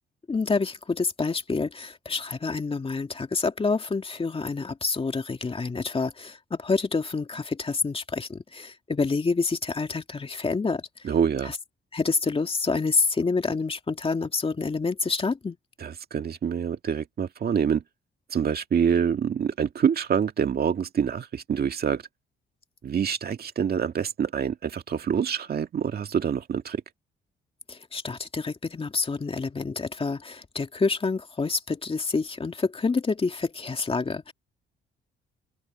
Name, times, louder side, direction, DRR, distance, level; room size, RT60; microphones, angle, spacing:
voice 1, 0.3-11.1 11.4-11.6 11.9-15.6 27.7-34.3, left 4 dB, 30° left, 2.5 m, -28 dB
voice 2, 11.0-11.5 15.8-17.8 18.3-22.0 22.8-26.8, right 7 dB, 50° right, 2.1 m, -26 dB
open air
cardioid pair, 90°, 20 cm